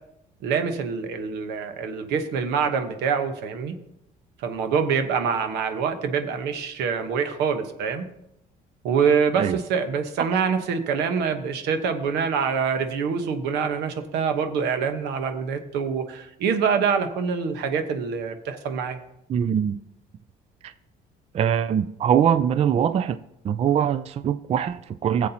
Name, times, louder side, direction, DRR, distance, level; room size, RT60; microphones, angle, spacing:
voice 1, 0.4-3.7 4.4-8.1 8.8-19.0, right 6 dB, 85° right, 7 dB, 1.1 m, -25 dB
voice 2, 19.3-19.8 20.6-20.7 21.3-23.2 23.4-25.3, right 8 dB, 40° right, 13 dB, 0.4 m, -22 dB
16.0 x 7.4 x 2.9 m, 0.81 s
cardioid pair, 110°, 17 cm